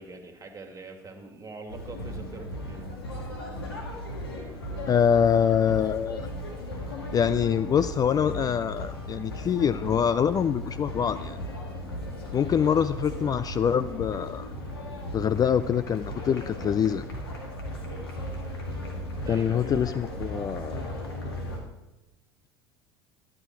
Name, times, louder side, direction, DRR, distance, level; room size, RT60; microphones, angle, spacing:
voice 1, 0.0-2.9 19.2-19.7, right 3 dB, 25° right, 5 dB, 2.0 m, -43 dB
sound 1, 1.7-21.6, left 1 dB, 90° left, 1.9 m, -36 dB
voice 2, 4.9-6.3 7.1-11.4 12.3-14.5 15.1-17.0 19.3-20.8, left 8 dB, 30° left, 14 dB, 0.4 m, -25 dB
11.5 x 9.9 x 4.6 m, 1.0 s
hypercardioid pair, 80°, 12 cm